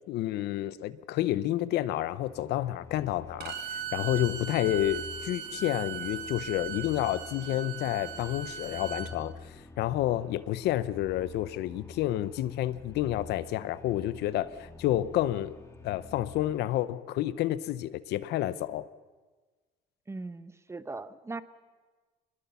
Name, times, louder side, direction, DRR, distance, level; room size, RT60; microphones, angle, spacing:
voice 1, 0.1-9.3 9.8-15.5 15.8-18.9, left 14 dB, 80° left, 15 dB, 0.8 m, -30 dB
sound 1, 2.0-16.8, left 4 dB, 15° left, 2.0 m, -48 dB
Bowed string instrument, 3.4-9.1, right 8 dB, 75° right, 2.2 m, -38 dB
voice 2, 20.1-21.4, right 3 dB, 15° right, 14 dB, 1.0 m, -39 dB
23.5 x 21.0 x 7.0 m, 1.3 s
cardioid pair, 110°, 17 cm